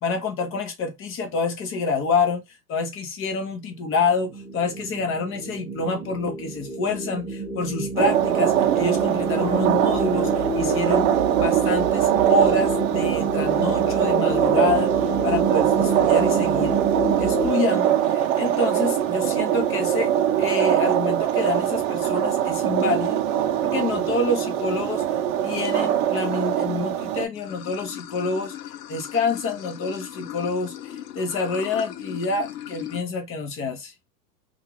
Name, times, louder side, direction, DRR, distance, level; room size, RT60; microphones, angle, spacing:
voice 1, 0.0-11.1 11.4-14.9 15.2-16.8 17.2-20.1 20.4-23.2 23.6-25.0 25.4-28.5 28.9-33.9, left 3 dB, 25° left, 0.8 m, -27 dB
sound 1, 3.7-17.5, right 2 dB, 5° right, 0.6 m, -29 dB
sound 2, 8.0-27.3, right 10 dB, 45° right, 0.7 m, -22 dB
Water / Sink (filling or washing), 27.3-33.0, left 11 dB, 70° left, 0.7 m, -37 dB
2.5 x 2.4 x 3.1 m
hypercardioid pair, 115°, 50 cm